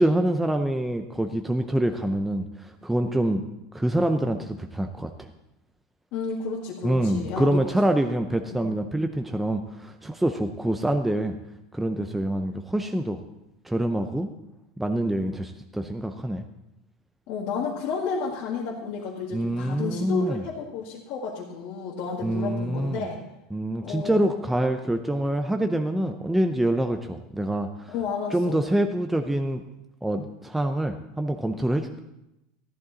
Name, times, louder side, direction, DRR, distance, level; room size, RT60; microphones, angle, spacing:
voice 1, 0.0-3.4 3.7-5.3 6.8-11.4 11.7-13.2 13.6-14.3 14.8-16.5 19.3-20.4 22.2-23.1 23.5-27.9 28.3-29.6 30.0-32.0, right 1 dB, 5° right, 5 dB, 0.5 m, -26 dB
voice 2, 6.1-7.6 8.5-8.6 17.3-23.2 23.8-24.3 27.9-28.6, left 5 dB, 50° left, -4 dB, 1.8 m, -31 dB
13.5 x 11.5 x 3.9 m, 0.89 s
supercardioid pair, 135°, 3 cm